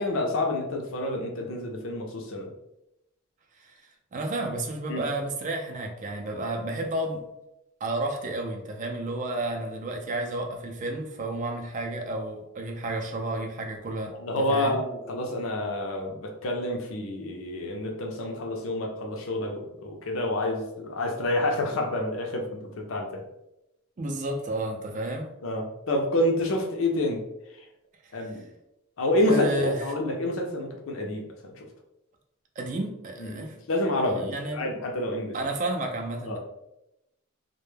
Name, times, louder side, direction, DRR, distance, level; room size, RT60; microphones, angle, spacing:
voice 1, 0.0-2.5 4.9-5.0 14.2-23.2 25.4-27.2 28.1-28.4 29.0-31.3 31.6-31.7 33.2-35.4 36.2-36.4, left 1 dB, 65° left, 2 dB, 0.5 m, -28 dB
voice 2, 4.1-7.2 7.8-14.8 24.0-25.3 28.0-28.1 29.2-29.8 32.6-33.6 34.1-34.7 35.3-36.4, right 2 dB, 35° right, 3 dB, 0.4 m, -31 dB
2.2 x 2.0 x 3.1 m, 0.87 s
head